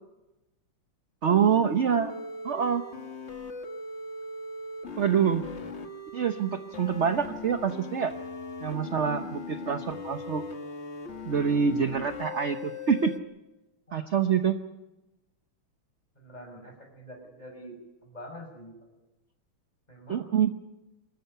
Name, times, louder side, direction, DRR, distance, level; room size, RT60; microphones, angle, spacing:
voice 1, 1.2-2.1 2.4-2.8 5.0-5.4 6.1-8.1 8.6-10.4 11.2-13.1 13.9-14.6 20.1-20.5, right 7 dB, 50° right, 8 dB, 0.8 m, -26 dB
sound 1, 1.3-13.2, left 4 dB, 35° left, 1.6 m, -39 dB
voice 2, 8.8-9.3 13.9-14.1 16.2-17.7 18.0-18.7 19.9-20.3, equal, 20° left, 3 dB, 5.7 m, -45 dB
25.0 x 14.0 x 9.6 m, 0.98 s
omnidirectional pair, 2.4 m